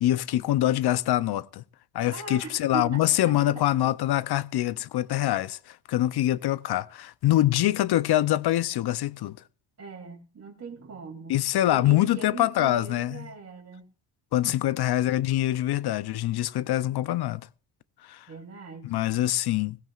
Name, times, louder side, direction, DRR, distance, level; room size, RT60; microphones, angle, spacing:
voice 1, 0.0-1.6 1.9-9.4 11.3-13.3 14.3-17.4 18.0-18.3 18.8-19.8, left 14 dB, 60° left, 0.6 m, -24 dB
voice 2, 2.1-3.8 9.8-11.4 11.7-13.8 18.3-18.9, right 4 dB, 35° right, 3.3 m, -40 dB
18.0 x 16.0 x 2.4 m
cardioid pair, 85°, 44 cm